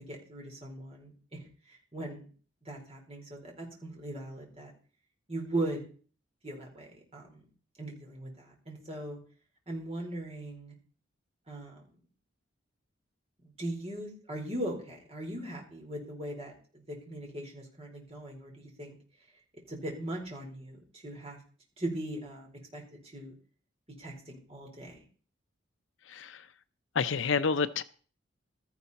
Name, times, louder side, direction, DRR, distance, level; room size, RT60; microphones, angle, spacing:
voice 1, 0.1-1.4 1.7-2.3 2.6-4.7 5.3-5.9 6.4-7.4 7.8-9.2 9.7-10.7 11.5-11.8 13.6-19.0 19.7-21.4 21.8-23.3 24.0-25.0, right 1 dB, 30° right, 4.2 m, -39 dB
voice 2, 26.1-26.5 26.9-27.8, left 5 dB, 70° left, 0.6 m, -29 dB
16.0 x 13.0 x 4.2 m
head